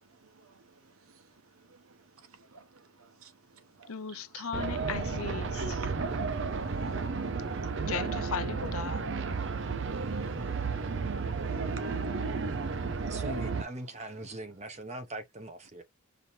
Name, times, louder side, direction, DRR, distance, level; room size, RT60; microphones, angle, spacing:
voice 1, 0.2-0.6 1.7-2.0 2.3-3.9 4.3-4.5 5.5-5.9 6.4-7.1 7.4-7.7 9.4-12.0 13.0-13.1, right 5 dB, 85° right, 1.1 m, -53 dB
voice 2, 3.9-5.8 7.9-9.1, left 6 dB, 85° left, 0.7 m, -37 dB
sound 1, 4.5-13.6, right 4 dB, 55° right, 0.6 m, -32 dB
voice 3, 13.0-15.8, right 1 dB, 30° right, 1.1 m, -41 dB
5.0 x 2.9 x 2.6 m
head